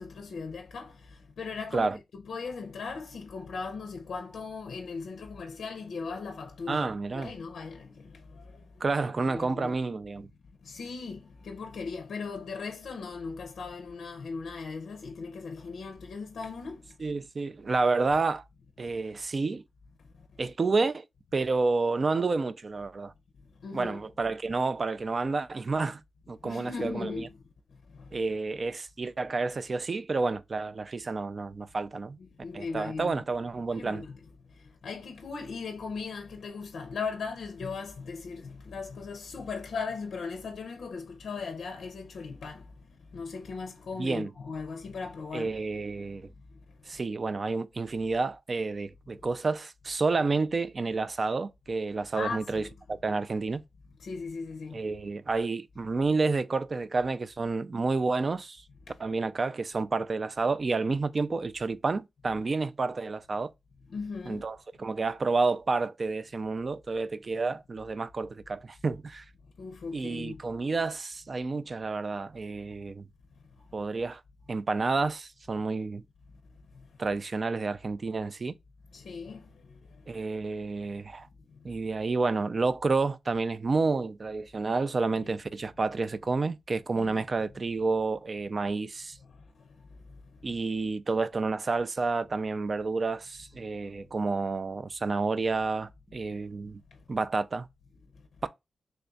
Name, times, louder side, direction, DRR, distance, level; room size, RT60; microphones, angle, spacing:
voice 1, 0.0-8.7 9.2-9.7 10.6-16.9 23.6-24.0 26.4-27.3 27.9-28.2 32.2-33.2 33.7-34.2 34.5-42.7 43.1-45.5 46.9-47.0 52.1-52.7 54.0-54.8 58.9-59.0 63.9-64.4 69.6-70.4 76.7-76.9 78.9-80.2 85.2-85.3 87.0-87.2 89.2-90.4, left 4 dB, 90° left, 0.5 m, -38 dB
voice 2, 6.7-7.3 8.8-10.3 17.0-18.5 18.8-19.6 20.4-21.0 21.3-23.1 23.7-26.0 26.3-27.3 28.1-32.2 32.5-34.0 44.0-44.3 45.3-46.3 46.9-53.6 54.7-58.6 59.0-63.5 64.2-69.3 69.9-73.1 73.7-74.2 74.5-76.0 77.0-78.5 80.1-81.3 81.6-89.2 90.4-96.8 97.1-97.7 98.4-98.5, right 3 dB, 45° right, 0.3 m, -30 dB
3.3 x 2.3 x 3.8 m
wide cardioid pair, 90°, 0 cm